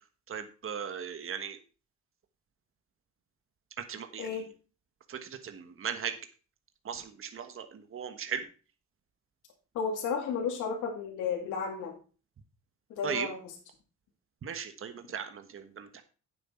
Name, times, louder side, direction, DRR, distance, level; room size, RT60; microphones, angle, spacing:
voice 1, 0.3-1.6 3.8-4.4 5.1-6.1 6.8-8.4 13.0-13.3 14.4-16.0, right 7 dB, 45° right, 8 dB, 1.3 m, -37 dB
voice 2, 9.7-11.9 13.0-13.4, left 6 dB, 90° left, 1 dB, 2.3 m, -32 dB
9.5 x 7.8 x 4.4 m, 0.36 s
cardioid pair, 90°, 30 cm